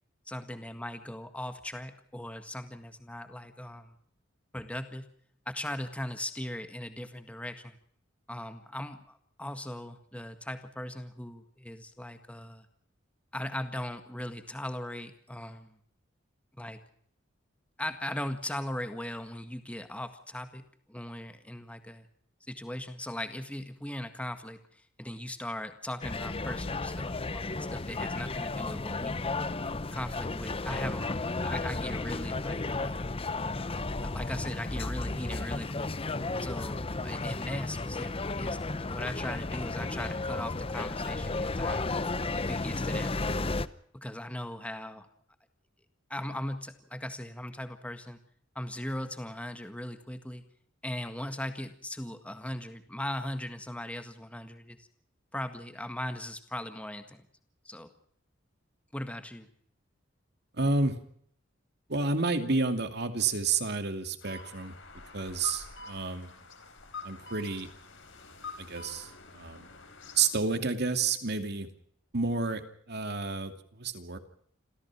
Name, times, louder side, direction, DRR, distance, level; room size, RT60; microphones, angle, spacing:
voice 1, 0.3-4.0 4.5-5.1 5.5-7.8 8.3-12.7 13.3-15.8 16.5-16.8 17.8-22.1 22.5-29.2 29.9-33.1 34.0-36.1 36.4-42.0 42.5-43.4 43.9-45.1 46.1-48.2 48.6-50.4 50.8-54.9 55.3-57.2 57.7-57.9 58.9-59.5, left 1 dB, 5° left, 8 dB, 1.8 m, -39 dB
sound 1, 26.0-43.7, left 3 dB, 30° left, 0.8 m, -33 dB
voice 2, 60.6-61.0 61.9-64.7 65.1-66.3 67.0-67.7 68.6-69.7 70.2-71.7 72.1-72.6 72.9-74.2, right 4 dB, 55° right, 8 dB, 2.6 m, -30 dB
sound 2, 64.2-70.3, left 4 dB, 70° left, 4.3 m, -46 dB
28.0 x 15.5 x 6.0 m, 0.63 s
head